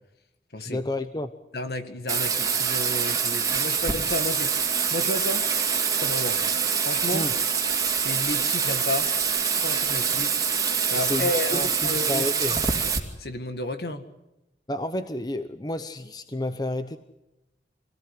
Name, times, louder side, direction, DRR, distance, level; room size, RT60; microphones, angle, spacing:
voice 1, 0.6-1.3 7.1-7.3 10.9-12.6 14.7-17.0, left 1 dB, 20° left, 10 dB, 0.8 m, -31 dB
voice 2, 1.5-4.5 4.9-5.5 6.0-6.4 6.8-7.3 8.0-9.1 9.5-10.4 10.9-12.6 13.2-14.1, left 1 dB, 60° left, 8 dB, 1.9 m, -32 dB
Bathtub (filling or washing), 2.1-13.0, right 6 dB, 20° right, 2.5 m, -25 dB
25.5 x 17.5 x 9.7 m, 0.94 s
head